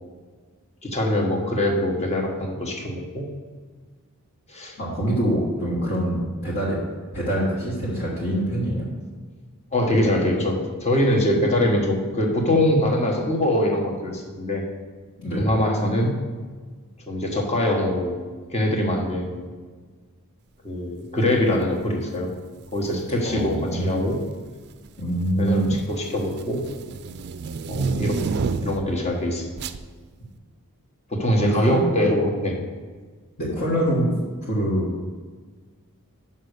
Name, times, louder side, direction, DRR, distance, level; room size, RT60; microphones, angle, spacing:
voice 1, 0.8-3.3 4.5-4.8 5.3-5.4 9.7-14.6 15.3-16.1 17.1-18.1 18.5-19.5 20.6-22.3 22.7-24.2 25.4-26.6 27.7-28.2 28.6-29.5 31.1-32.6, left 1 dB, 30° left, 0 dB, 1.2 m, -23 dB
voice 2, 4.8-6.8 7.1-8.9 15.2-15.6 23.2-24.1 25.0-25.8 31.4-31.8 33.4-34.1 34.5-34.9, right 1 dB, 50° left, -7 dB, 1.5 m, -25 dB
sound 1, 22.6-22.9 23.9-24.4 24.7-29.0 29.6-29.8, right 4 dB, 50° right, 0.4 m, -29 dB
5.8 x 5.6 x 6.5 m, 1.5 s
head